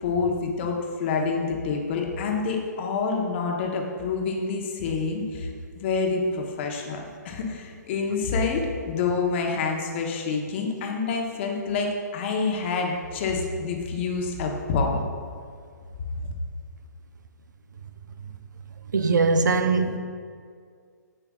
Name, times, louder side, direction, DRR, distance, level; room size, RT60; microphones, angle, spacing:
voice 1, 0.0-5.5 5.7-15.0, left 4 dB, 40° left, 1 dB, 1.1 m, -27 dB
voice 2, 18.9-20.0, right 4 dB, 85° right, 8 dB, 0.6 m, -21 dB
8.0 x 7.3 x 2.4 m, 2.1 s
hypercardioid pair, 145°, 10 cm